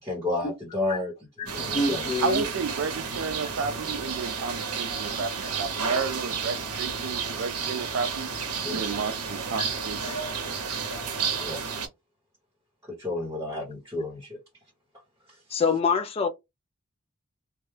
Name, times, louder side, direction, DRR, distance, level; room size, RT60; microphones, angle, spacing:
voice 1, 0.0-1.1 1.4-2.1 8.6-8.8 11.4-11.6 12.9-14.4, left 2 dB, 15° right, 0.9 m, -31 dB
voice 2, 1.4-2.4 10.1-10.2 15.5-16.3, left 4 dB, 25° left, 0.3 m, -26 dB
sound 1, 1.5-11.9, right 5 dB, 80° right, 0.7 m, -31 dB
voice 3, 2.2-8.3 8.7-10.0, right 5 dB, 60° right, 0.4 m, -31 dB
2.2 x 2.1 x 3.1 m
head